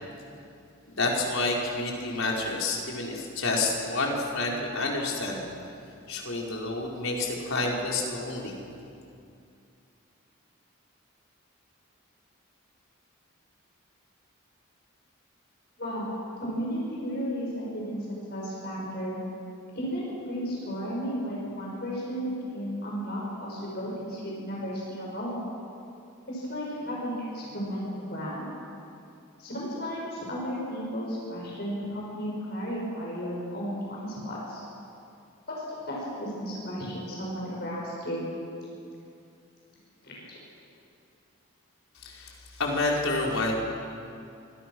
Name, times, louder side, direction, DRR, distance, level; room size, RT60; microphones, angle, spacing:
voice 1, 0.9-5.4 6.1-8.6 42.0-43.5, left 2 dB, 75° left, -2 dB, 4.8 m, -29 dB
voice 2, 15.8-19.2 19.7-25.4 26.3-28.5 29.4-34.6 35.5-35.6 35.8-38.2 40.0-40.4, equal, 50° left, -4 dB, 6.7 m, -34 dB
25.5 x 25.5 x 6.3 m, 2.6 s
head